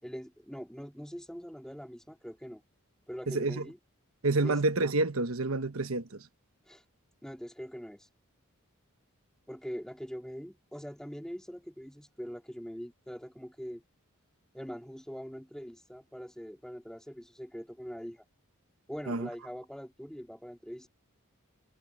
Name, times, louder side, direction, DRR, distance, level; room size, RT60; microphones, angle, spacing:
voice 1, 0.0-2.6 3.1-3.8 4.4-4.6 6.7-6.8 7.2-8.1 9.5-13.8 14.5-18.2 18.9-20.9, equal, 5° left, 3.3 m, -43 dB
voice 2, 3.3-3.6 4.2-6.2 19.1-19.3, right 2 dB, 70° right, 1.2 m, -28 dB
head